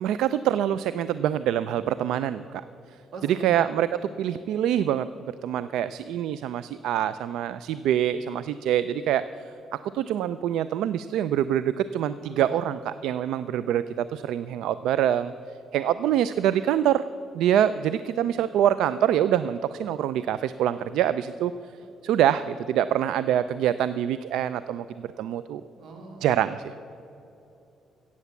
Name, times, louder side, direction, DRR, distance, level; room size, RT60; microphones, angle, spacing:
voice 1, 0.0-2.6 3.2-3.9 4.2-5.1 5.4-15.3 15.7-17.0 17.3-21.5 22.0-25.6 26.2-26.7, right 10 dB, 85° right, 14 dB, 0.3 m, -25 dB
voice 2, 3.1-3.6 12.2-12.5 21.8-21.9 25.7-26.3, right 3 dB, 65° right, 3 dB, 2.5 m, -42 dB
15.0 x 8.4 x 7.1 m, 2.9 s
cardioid pair, 90°, 0 cm